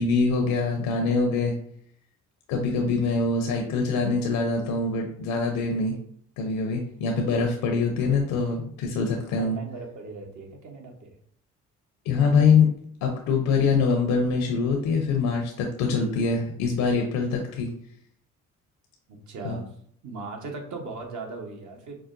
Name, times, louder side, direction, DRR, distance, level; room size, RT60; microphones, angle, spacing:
voice 1, 0.0-1.5 2.5-6.0 6.4-9.6 12.1-12.7 13.0-17.7 19.4-19.5, left 4 dB, 75° left, 2 dB, 0.6 m, -24 dB
voice 2, 9.3-11.2 19.1-19.8 20.0-22.0, right 3 dB, 55° right, 3 dB, 1.0 m, -38 dB
4.7 x 2.1 x 2.5 m, 0.63 s
supercardioid pair, 60°, 34 cm